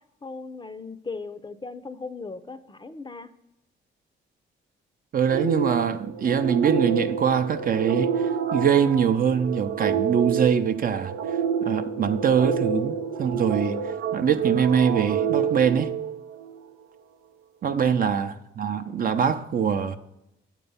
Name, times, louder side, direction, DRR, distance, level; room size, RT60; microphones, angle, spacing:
voice 1, 0.2-3.4 17.7-18.2, left 4 dB, 20° left, 0.5 m, -38 dB
voice 2, 5.1-8.2 8.5-11.1 11.6-15.9 17.6-20.0, right 7 dB, 45° right, 0.6 m, -23 dB
sound 1, 5.3-16.6, right 7 dB, 85° right, 0.5 m, -28 dB
7.8 x 4.6 x 5.5 m
cardioid pair, 80°, 21 cm